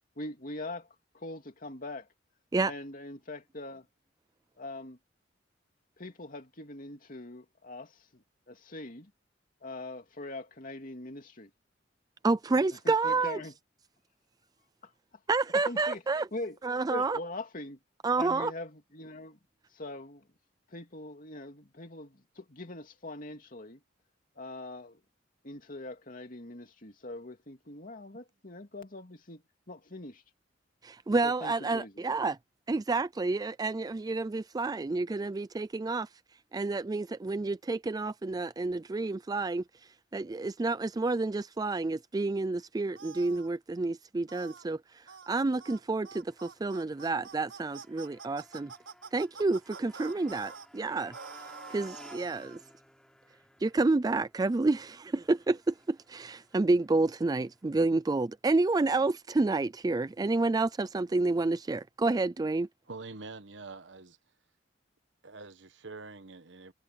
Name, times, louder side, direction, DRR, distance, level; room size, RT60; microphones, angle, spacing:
voice 1, 0.2-0.9 1.1-2.1 2.6-3.9 4.6-5.0 6.0-9.1 9.6-11.5 12.8-13.5 14.8-14.9 15.5-16.0 16.3-16.6 16.9-17.8 18.2-19.4 19.7-20.2 20.7-23.8 24.4-25.0 25.4-30.2 31.2-31.9, left 2 dB, 45° left, 2.7 m, -42 dB
voice 2, 12.2-13.4 15.3-16.3 16.6-17.2 18.0-18.5 30.8-32.4 32.7-36.1 36.5-39.6 40.1-48.7 49.1-51.1 51.7-52.6 53.6-62.7, right 3 dB, 20° right, 0.3 m, -29 dB
sound 1, 42.9-43.5 44.3-44.6 45.1-45.3 45.6-45.8 46.0-50.7 51.1-52.6, right 5 dB, 85° right, 5.4 m, -47 dB
Motorcycle, 45.8-57.9, equal, 5° left, 4.1 m, -57 dB
voice 3, 62.9-64.2 65.2-66.7, right 3 dB, 70° right, 1.3 m, -45 dB
head